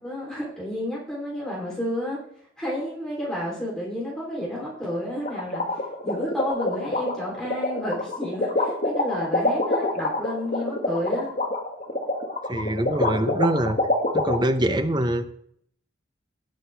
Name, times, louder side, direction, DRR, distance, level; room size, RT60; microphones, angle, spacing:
voice 1, 0.0-2.2 2.6-11.3, left 1 dB, 5° left, -5 dB, 3.2 m, -31 dB
sound 1, 5.2-14.4, left 2 dB, 45° left, 1.9 m, -25 dB
voice 2, 12.5-13.8 14.1-15.3, right 1 dB, 25° right, 9 dB, 0.8 m, -24 dB
18.0 x 6.7 x 3.4 m, 0.67 s
head